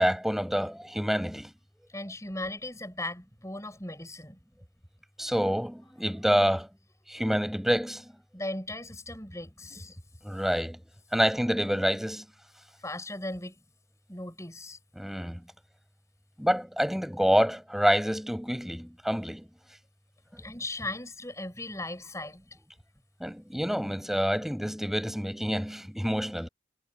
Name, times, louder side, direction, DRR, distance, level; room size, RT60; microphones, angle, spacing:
voice 1, 0.0-1.5 5.2-6.7 7.1-8.1 10.2-10.8 11.1-12.3 15.0-15.4 16.4-19.5 23.2-26.5, equal, ahead, 6.0 m, -27 dB
voice 2, 1.9-4.4 8.3-10.0 12.8-13.6 14.1-14.8 20.4-22.5, left 2 dB, 15° left, 7.4 m, -37 dB
head